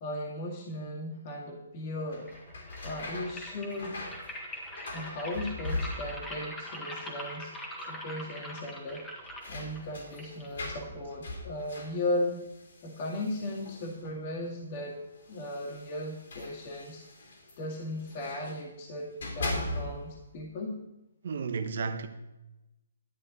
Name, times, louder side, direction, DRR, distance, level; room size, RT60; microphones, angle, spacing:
voice 1, 0.0-2.3 2.8-4.0 4.9-7.5 7.9-9.0 9.5-12.4 12.8-15.0 15.3-20.7, left 1 dB, 40° left, 2.1 m, -36 dB
sound 1, 2.0-6.4 6.7-7.4 7.7-7.8 8.9-14.3 15.1-18.6 19.0-20.2, left 2 dB, 70° left, 3.4 m, -40 dB
sound 2, 2.1-11.2, equal, 10° left, 1.7 m, -43 dB
voice 2, 21.2-22.1, right 5 dB, 65° right, 1.1 m, -33 dB
11.0 x 9.2 x 4.1 m
hypercardioid pair, 150°, 0 cm